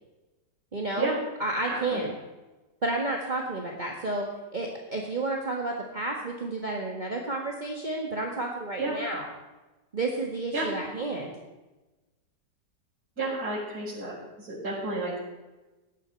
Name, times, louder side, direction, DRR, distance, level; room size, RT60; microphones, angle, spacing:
voice 1, 0.7-1.1 1.4-2.2 2.8-9.3 9.9-11.3, right 2 dB, 25° right, 0 dB, 1.5 m, -31 dB
voice 2, 1.7-2.0 8.8-8.9 10.5-10.7 13.2-15.2, right 2 dB, 55° right, -11 dB, 5.8 m, -31 dB
17.5 x 12.0 x 4.5 m, 1.1 s
omnidirectional pair, 1.9 m